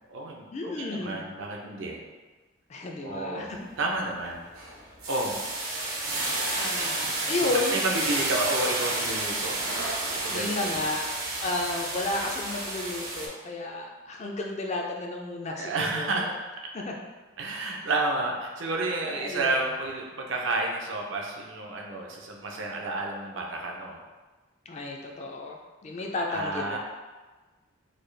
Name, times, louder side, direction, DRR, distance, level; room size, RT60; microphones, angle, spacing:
voice 1, 0.0-2.0 3.0-4.4 5.1-5.4 6.8-6.9 7.4-9.6 10.2-10.8 15.6-16.3 17.4-24.0 26.3-26.8, right 2 dB, 60° right, 0 dB, 0.6 m, -31 dB
voice 2, 0.5-1.2 2.7-3.6 6.5-7.8 10.3-11.1 11.4-16.3 16.7-16.9 17.5-17.8 19.0-19.6 24.7-26.8, left 2 dB, 30° left, 0 dB, 0.3 m, -32 dB
sound 1, 3.5-3.8 4.2-13.3, right 2 dB, 85° right, 1.0 m, -31 dB
4.1 x 2.3 x 3.2 m, 1.3 s
head